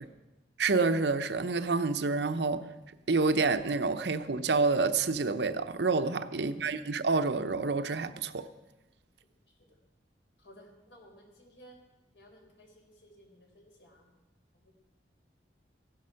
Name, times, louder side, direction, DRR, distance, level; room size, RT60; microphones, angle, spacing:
voice 1, 0.6-2.6 3.1-8.5, right 4 dB, 75° right, 0.7 m, -28 dB
voice 2, 10.4-11.8 12.1-14.1 14.6-14.7, equal, 80° left, 4.0 m, -57 dB
15.5 x 11.5 x 5.7 m
head